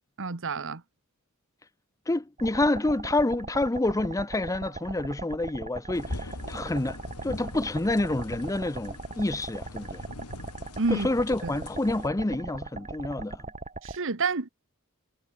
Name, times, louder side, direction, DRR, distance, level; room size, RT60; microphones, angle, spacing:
voice 1, 0.2-0.8 10.8-11.1 11.4-11.5 13.8-14.5, right 3 dB, 60° right, 1.3 m, -28 dB
voice 2, 2.1-10.0 10.9-13.4, left 2 dB, 15° left, 0.6 m, -28 dB
sound 1, 2.4-14.0, right 3 dB, 30° right, 3.0 m, -39 dB
sound 2, 5.9-12.1, left 2 dB, 80° left, 2.5 m, -42 dB
head